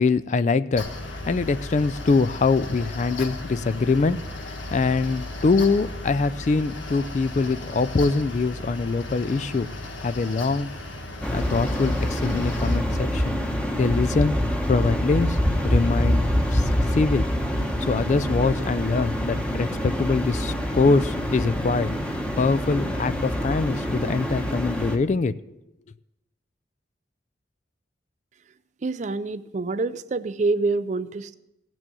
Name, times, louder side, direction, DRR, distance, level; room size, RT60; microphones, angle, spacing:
voice 1, 0.0-9.7 10.0-10.7 11.3-13.4 13.7-14.3 14.7-15.4 15.6-16.2 16.5-17.3 17.8-21.9 22.4-25.3, left 4 dB, 40° left, 15 dB, 0.3 m, -23 dB
Mechanical fan, 0.8-12.8, left 2 dB, 85° left, 1.5 m, -36 dB
sound 1, 11.2-25.0, equal, 5° left, 0.9 m, -25 dB
voice 2, 28.8-31.3, right 3 dB, 40° right, 14 dB, 0.4 m, -26 dB
16.0 x 6.2 x 6.9 m, 0.93 s
head